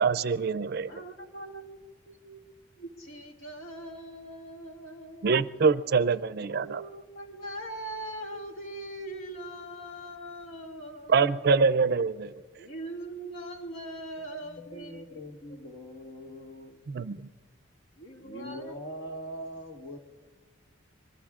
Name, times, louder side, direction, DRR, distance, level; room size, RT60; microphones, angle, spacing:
voice 1, 0.0-0.9 5.2-6.8 11.1-12.3 16.9-17.3, right 5 dB, 50° right, 15 dB, 0.4 m, -25 dB
voice 2, 0.8-5.5 6.4-11.6 12.6-15.2 18.0-18.7 19.9-20.0, right 1 dB, 80° left, 0 dB, 2.2 m, -42 dB
voice 3, 14.2-16.8 18.2-20.0, equal, 65° left, 4 dB, 1.5 m, -42 dB
25.5 x 22.5 x 2.4 m, 1.3 s
head